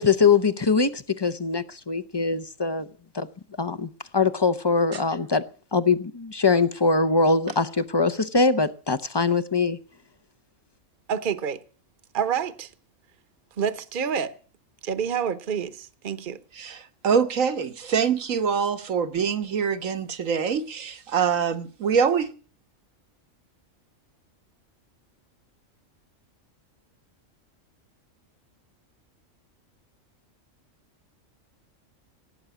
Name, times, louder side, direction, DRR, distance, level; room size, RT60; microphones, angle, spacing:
voice 1, 0.0-2.9 3.1-3.3 3.6-5.5 5.7-9.8, left 4 dB, 30° left, 0.5 m, -22 dB
voice 2, 11.1-11.6 12.1-12.7 13.6-14.3 14.8-16.4, right 7 dB, 45° right, 1.0 m, -28 dB
voice 3, 16.6-22.3, right 6 dB, 80° right, 1.6 m, -24 dB
17.5 x 8.8 x 8.2 m
omnidirectional pair, 1.4 m